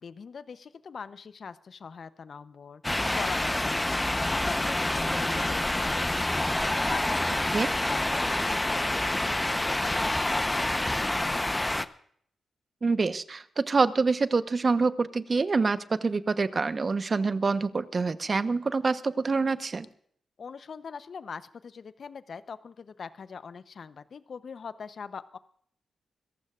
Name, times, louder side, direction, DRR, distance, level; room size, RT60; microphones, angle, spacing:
voice 1, 0.0-6.3 6.9-11.9 20.4-25.4, left 6 dB, 60° left, 14 dB, 0.9 m, -42 dB
sound 1, 2.8-11.9, left 1 dB, 20° left, 1.0 m, -27 dB
voice 2, 12.8-19.9, right 4 dB, 45° right, 12 dB, 1.1 m, -26 dB
27.0 x 15.0 x 2.5 m, 0.64 s
supercardioid pair, 45°, 0 cm